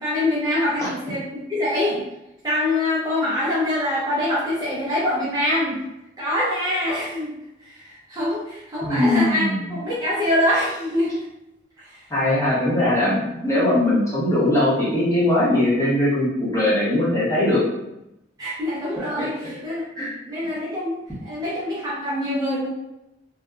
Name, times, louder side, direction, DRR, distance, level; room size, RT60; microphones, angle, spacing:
voice 1, 0.0-2.0 2.4-5.8 6.2-7.3 7.6-11.2 11.8-12.0 18.4-19.3 19.6-22.7, left 1 dB, 20° right, -8 dB, 0.5 m, -24 dB
voice 2, 8.8-9.6 12.1-17.6 19.2-19.3 20.0-20.1, left 1 dB, 15° left, -9 dB, 0.8 m, -20 dB
2.6 x 2.1 x 2.3 m, 0.89 s
head